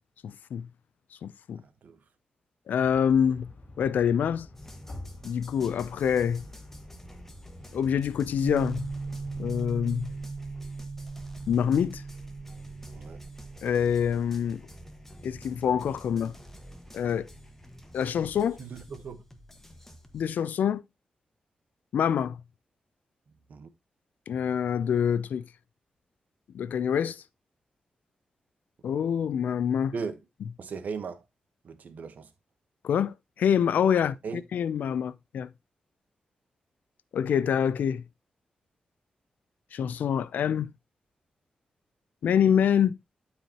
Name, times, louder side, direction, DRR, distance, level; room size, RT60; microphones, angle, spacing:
voice 1, 0.2-0.7 1.2-1.6 2.7-3.5 3.8-4.5 5.2-6.4 7.7-8.9 9.4-10.1 11.5-12.0 13.6-14.6 15.2-16.3 16.9-17.3 17.9-18.6 20.1-20.8 21.9-22.4 24.3-25.5 26.5-27.2 28.8-29.9 32.8-34.2 34.5-35.5 37.1-38.0 39.7-40.7 42.2-43.0, left 8 dB, 85° left, 0.5 m, -26 dB
voice 2, 1.6-2.0 12.9-13.2 18.6-19.2 23.5-23.7 29.9-30.2 30.6-31.2 31.6-32.3 34.0-34.4, right 5 dB, 70° right, 1.2 m, -38 dB
sound 1, 2.8-9.7, left 2 dB, 35° left, 3.3 m, -48 dB
sound 2, 4.6-20.3, equal, 10° left, 1.4 m, -49 dB
sound 3, 8.4-13.6, right 3 dB, 35° right, 0.7 m, -38 dB
12.0 x 4.8 x 2.9 m
cardioid pair, 75°, 3 cm